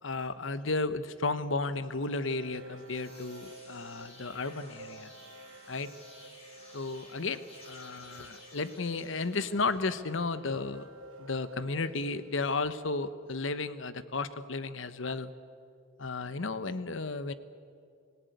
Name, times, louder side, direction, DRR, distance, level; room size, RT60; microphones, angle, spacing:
voice 1, 0.0-5.1 5.7-5.9 6.7-10.9 11.2-15.3 16.0-17.3, left 3 dB, 70° left, 13 dB, 1.0 m, -33 dB
sound 1, 2.1-12.6, right 2 dB, 80° right, 1.3 m, -52 dB
sound 2, 2.6-10.0, left 1 dB, 30° left, 5.9 m, -54 dB
25.5 x 17.0 x 9.4 m, 2.4 s
head